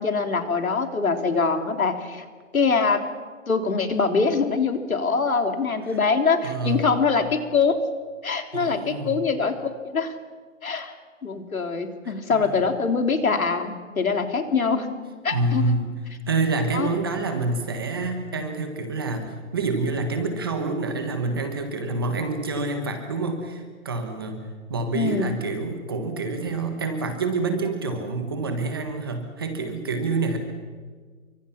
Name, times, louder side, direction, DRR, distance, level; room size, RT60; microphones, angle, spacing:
voice 1, 0.0-2.2 2.5-3.0 3.5-7.8 8.2-10.1 10.6-10.9 11.2-14.9 15.2-15.7 16.7-16.9 24.9-25.3, left 4 dB, 85° left, 6 dB, 3.5 m, -23 dB
voice 2, 6.4-7.0 8.5-9.2 12.0-12.6 15.3-15.9 16.3-24.4 24.7-30.4, right 3 dB, 15° right, 6 dB, 1.4 m, -27 dB
28.5 x 24.5 x 5.9 m, 1.5 s
hypercardioid pair, 180°, 41 cm